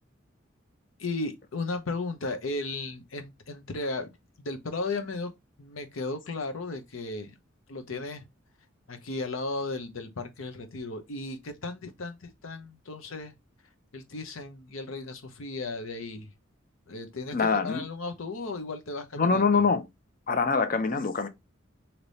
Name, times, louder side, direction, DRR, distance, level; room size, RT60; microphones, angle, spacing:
voice 1, 1.0-4.1 4.4-5.3 5.6-7.3 7.7-8.2 8.9-13.3 13.9-16.3 16.9-19.6, left 3 dB, 80° left, 0.8 m, -35 dB
voice 2, 17.3-17.8 19.2-19.8 20.3-21.3, left 4 dB, 45° left, 0.6 m, -24 dB
3.3 x 2.9 x 4.0 m
head